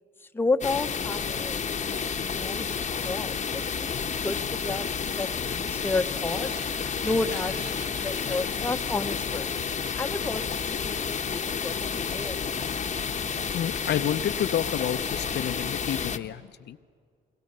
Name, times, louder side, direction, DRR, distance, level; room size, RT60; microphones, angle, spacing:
voice 1, 0.2-4.9 5.2-5.3 5.6-6.5 7.0-9.5 10.0-12.4, left 3 dB, 10° left, 8 dB, 0.7 m, -32 dB
sound 1, 0.6-16.2, left 6 dB, 35° left, 0.8 m, -30 dB
sound 2, 6.1-10.3, right 3 dB, 55° right, 3.4 m, -48 dB
voice 2, 13.5-16.4 16.7-16.8, left 10 dB, 55° left, 10 dB, 0.5 m, -29 dB
22.5 x 19.5 x 6.7 m, 2.1 s
cardioid pair, 90°, 20 cm